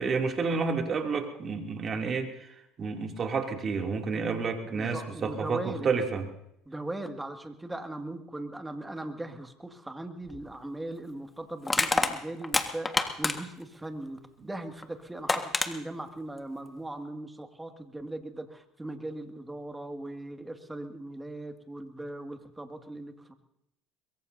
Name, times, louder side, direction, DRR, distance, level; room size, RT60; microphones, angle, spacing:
voice 1, 0.0-6.3, right 5 dB, 40° right, 3 dB, 2.7 m, -30 dB
voice 2, 4.7-5.9 6.7-23.3, right 1 dB, 10° right, 5 dB, 2.1 m, -39 dB
Crushing, 10.3-10.4 11.7-13.6 14.8-14.9 15.3-15.7, left 3 dB, 20° left, 1.6 m, -27 dB
23.0 x 22.5 x 2.7 m, 0.79 s
hypercardioid pair, 75°, 0 cm